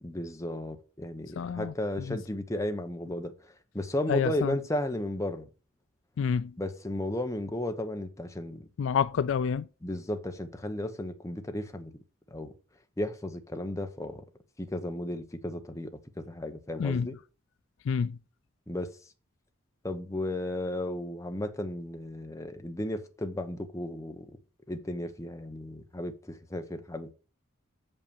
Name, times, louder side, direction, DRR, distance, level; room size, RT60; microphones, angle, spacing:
voice 1, 0.0-3.3 3.7-5.5 6.6-8.7 9.8-11.9 12.3-12.5 13.0-14.2 14.6-17.1 18.7-18.9 19.8-24.3 24.7-27.1, left 1 dB, 15° left, 0.9 m, -34 dB
voice 2, 1.4-2.2 4.1-4.6 6.2-6.5 8.8-9.7 16.8-17.1 17.9-18.2, left 6 dB, 65° left, 0.3 m, -28 dB
6.7 x 5.5 x 7.0 m
head